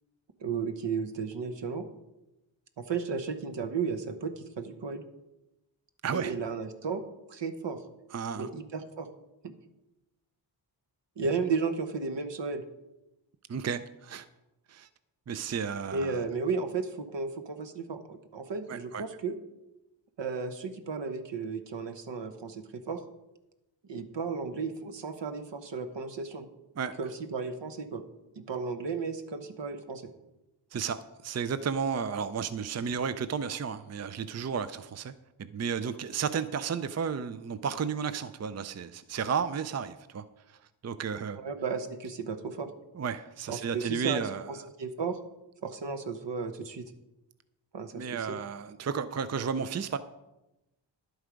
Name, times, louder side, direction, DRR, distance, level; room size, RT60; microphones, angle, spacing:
voice 1, 0.4-1.9 2.8-5.0 6.1-7.0 7.3-7.8 8.4-9.1 11.2-12.6 15.9-19.4 20.2-23.0 23.9-26.5 27.0-28.0 28.4-30.1 41.4-42.7 43.5-45.2 45.6-46.9 47.7-48.4, right 5 dB, 65° right, 8 dB, 1.1 m, -34 dB
voice 2, 6.0-6.3 8.1-8.5 13.5-14.3 14.7-14.9 15.3-16.2 18.7-19.0 26.8-26.9 30.7-35.1 35.4-41.4 42.9-44.5 47.9-50.0, right 6 dB, 35° right, 12 dB, 0.5 m, -33 dB
11.5 x 8.0 x 5.1 m, 0.97 s
wide cardioid pair, 95°, 46 cm